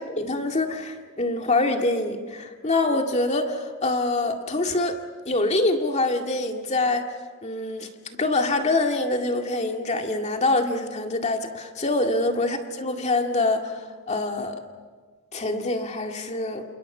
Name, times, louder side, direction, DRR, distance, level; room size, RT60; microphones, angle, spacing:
voice 1, 0.1-5.0 5.3-7.0 7.4-7.9 8.2-14.6 15.3-16.6, left 2 dB, 35° left, 4 dB, 2.1 m, -25 dB
29.0 x 28.0 x 5.6 m, 1.5 s
head